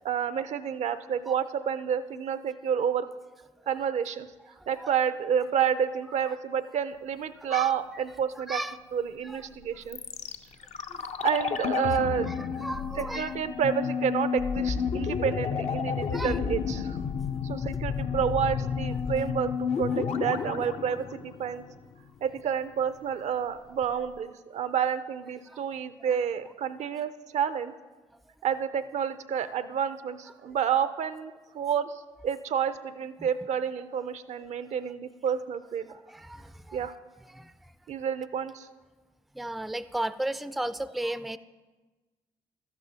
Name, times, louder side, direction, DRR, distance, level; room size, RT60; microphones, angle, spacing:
voice 1, 0.0-3.1 3.7-4.3 4.7-8.6 8.9-10.0 11.2-12.3 12.5-12.6 13.1-17.0 17.4-21.6 22.2-27.7 28.4-35.9 36.7-36.9 37.9-38.7, right 8 dB, 60° right, 13 dB, 0.5 m, -29 dB
voice 2, 4.6-4.9 7.4-7.7 8.4-8.8 9.2-9.5 10.9-11.0 12.3-13.3 16.1-16.4 25.5-25.6 26.0-26.1 33.2-33.3 35.9-36.8 37.3-37.7 39.3-41.4, right 1 dB, ahead, 14 dB, 0.4 m, -35 dB
sound 1, 9.9-21.9 22.2-22.3, left 6 dB, 60° left, 0.6 m, -31 dB
12.5 x 9.5 x 2.8 m, 1.3 s
hypercardioid pair, 45°, 13 cm